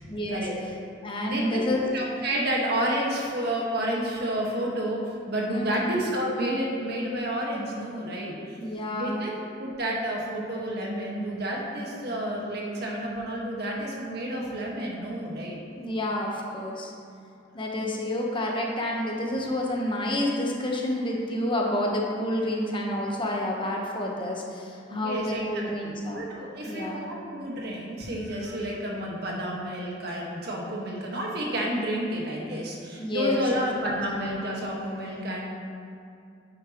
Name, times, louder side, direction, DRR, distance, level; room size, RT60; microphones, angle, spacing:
voice 1, 0.1-0.4 1.0-1.9 5.5-5.9 8.6-9.2 15.8-16.9 17.5-26.2 26.6-27.0 33.0-33.4, left 1 dB, 25° left, -1 dB, 1.1 m, -29 dB
voice 2, 1.2-1.6 1.9-8.6 8.9-9.3 9.6-15.6 17.5-17.9 24.9-35.6, right 1 dB, 60° right, -2 dB, 1.6 m, -30 dB
9.6 x 8.4 x 3.0 m, 2.4 s
head